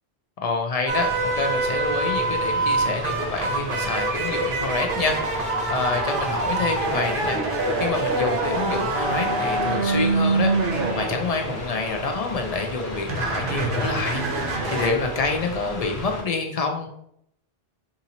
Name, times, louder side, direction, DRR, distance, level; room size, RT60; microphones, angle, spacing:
voice 1, 0.4-7.4 7.8-10.5 11.0-14.2 14.7-16.9, left 3 dB, 55° left, 4 dB, 0.4 m, -27 dB
Mechanical fan, 0.9-16.2, left 2 dB, 80° left, 1.2 m, -35 dB
sound 1, 0.9-12.2 12.8-14.9, right 3 dB, 60° right, 0.8 m, -25 dB
2.8 x 2.7 x 3.9 m, 0.74 s
omnidirectional pair, 1.1 m